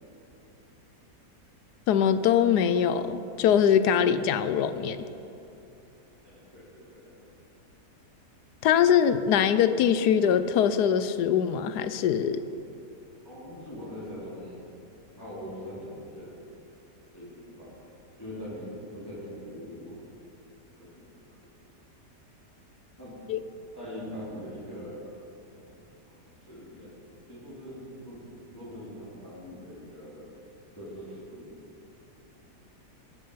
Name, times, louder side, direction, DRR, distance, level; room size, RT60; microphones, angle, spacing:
voice 1, 1.9-5.1 8.6-12.4 23.3-23.4, left 8 dB, 75° left, 12 dB, 1.2 m, -23 dB
voice 2, 6.2-7.2 13.2-14.6 15.2-16.4 17.1-17.8 18.2-20.0 20.8-21.0 23.0-23.1 23.8-25.1 26.1-26.2 26.5-30.2 30.8-31.5 32.0-32.1, equal, 15° left, -9 dB, 3.7 m, -42 dB
19.5 x 8.7 x 5.6 m, 2.8 s
omnidirectional pair, 1.8 m